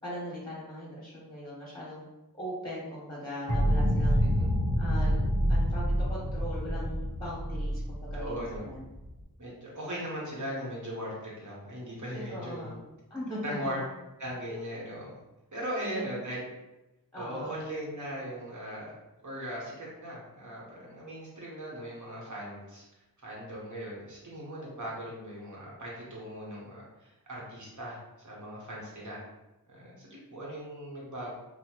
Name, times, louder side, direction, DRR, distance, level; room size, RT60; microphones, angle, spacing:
voice 1, 0.0-2.0 2.3-4.2 4.8-5.2 5.5-8.9 12.1-12.7 13.1-13.8 14.5-14.6 15.8-16.2 17.1-17.6, equal, 10° left, -8 dB, 1.0 m, -39 dB
sound 1, 3.5-9.2, equal, 85° right, 0.8 m, -27 dB
voice 2, 4.2-4.5 8.1-8.7 9.4-12.7 13.4-13.8 14.2-15.1 15.5-16.4 17.2-18.9 19.2-22.8 23.2-28.0 28.2-29.2 29.7-31.3, equal, 50° right, -5 dB, 1.1 m, -39 dB
2.8 x 2.1 x 2.9 m, 1.0 s
wide cardioid pair, 45°, 37 cm